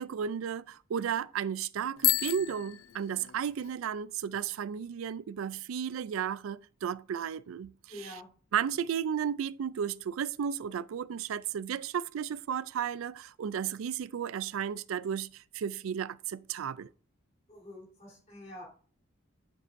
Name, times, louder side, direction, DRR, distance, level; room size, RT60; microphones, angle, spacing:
voice 1, 0.0-8.2 8.5-16.9, right 8 dB, 85° right, 0.3 m, -34 dB
Bicycle bell, 2.0-3.7, left 16 dB, 80° left, 0.4 m, -31 dB
voice 2, 7.9-8.3 17.5-18.6, left 1 dB, 35° left, 3.4 m, -46 dB
10.0 x 7.4 x 2.6 m
head